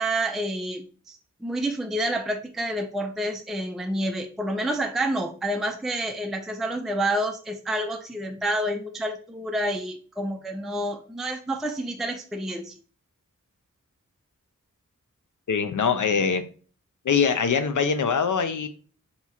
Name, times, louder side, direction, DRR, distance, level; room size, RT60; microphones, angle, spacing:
voice 1, 0.0-12.8, right 1 dB, ahead, 4 dB, 0.4 m, -29 dB
voice 2, 15.5-16.4 17.0-18.7, left 6 dB, 70° left, 10 dB, 0.5 m, -23 dB
2.9 x 2.4 x 4.2 m, 0.41 s
wide cardioid pair, 55°, 32 cm